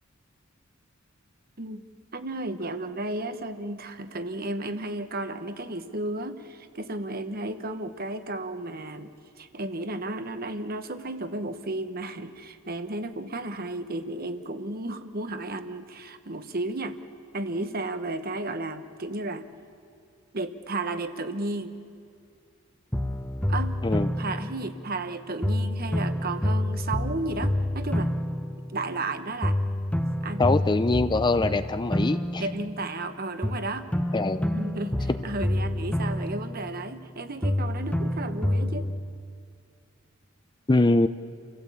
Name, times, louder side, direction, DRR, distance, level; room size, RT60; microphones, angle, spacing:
voice 1, 2.1-17.0 17.3-19.4 20.3-21.7 23.5-23.8 24.2-28.1 28.7-29.6 30.2-30.7 32.4-33.9 34.5-38.9, right 2 dB, 45° right, 9 dB, 1.2 m, -33 dB
sound 1, 22.9-25.1 25.4-29.1 29.4-33.1 33.4-37.1 37.4-39.0, left 1 dB, 5° left, 1.0 m, -28 dB
voice 2, 30.4-32.4 34.1-34.5 40.7-41.1, left 2 dB, 20° left, 12 dB, 0.5 m, -23 dB
29.0 x 16.0 x 8.5 m, 2.4 s
head